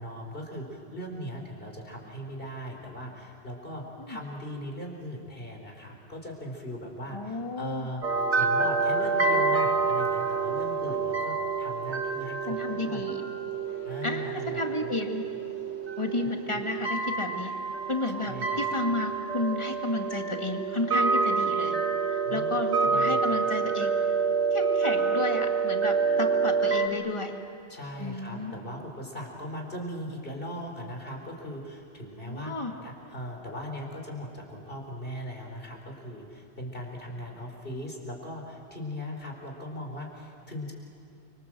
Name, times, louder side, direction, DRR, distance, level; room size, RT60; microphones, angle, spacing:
voice 1, 0.0-8.0 8.4-13.0 13.8-14.9 16.2-16.3 18.1-18.7 22.2-22.5 22.8-23.4 27.7-32.5 32.8-40.7, equal, 55° left, 1 dB, 4.9 m, -39 dB
voice 2, 7.1-7.9 12.5-13.2 14.0-15.2 16.0-17.5 17.9-21.8 22.1-23.9 24.5-27.3 28.0-28.5 32.2-32.7, left 2 dB, 25° left, 3 dB, 2.2 m, -32 dB
sound 1, 8.0-26.9, right 4 dB, 80° right, 2.1 m, -27 dB
30.0 x 25.5 x 7.7 m, 2.5 s
omnidirectional pair, 1.1 m